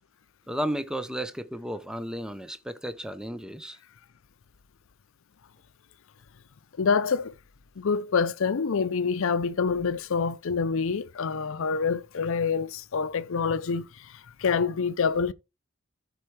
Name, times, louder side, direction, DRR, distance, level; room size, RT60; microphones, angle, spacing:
voice 1, 0.5-3.8, equal, 5° right, 0.6 m, -33 dB
voice 2, 6.8-7.3 7.8-15.3, left 5 dB, 65° left, 0.5 m, -26 dB
13.0 x 4.6 x 3.2 m
head